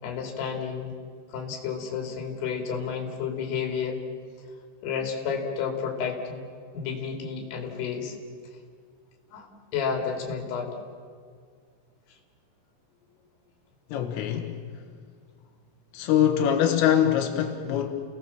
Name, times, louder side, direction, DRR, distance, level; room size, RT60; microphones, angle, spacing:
voice 1, 0.0-0.9 1.3-4.0 4.8-6.4 6.7-8.2 9.3-10.8, left 6 dB, 60° left, 2 dB, 4.6 m, -31 dB
voice 2, 13.9-14.6 15.9-17.9, left 10 dB, 85° left, 3 dB, 3.9 m, -23 dB
29.5 x 18.5 x 7.3 m, 2.1 s
omnidirectional pair, 5.7 m